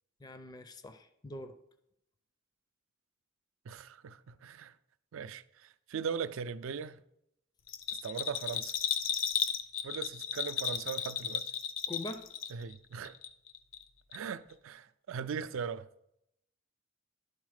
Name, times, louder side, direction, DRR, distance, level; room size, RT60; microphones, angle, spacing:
voice 1, 0.2-1.6 11.9-12.3, left 2 dB, 20° left, 0.4 m, -43 dB
voice 2, 3.7-4.7 5.1-7.0 8.0-8.8 9.8-11.5 12.5-13.1 14.1-15.8, right 6 dB, 70° right, 0.4 m, -39 dB
Bell, 7.7-12.8 13.0-13.8 14.1-14.2, left 8 dB, 70° left, 0.5 m, -34 dB
11.5 x 4.0 x 4.8 m
head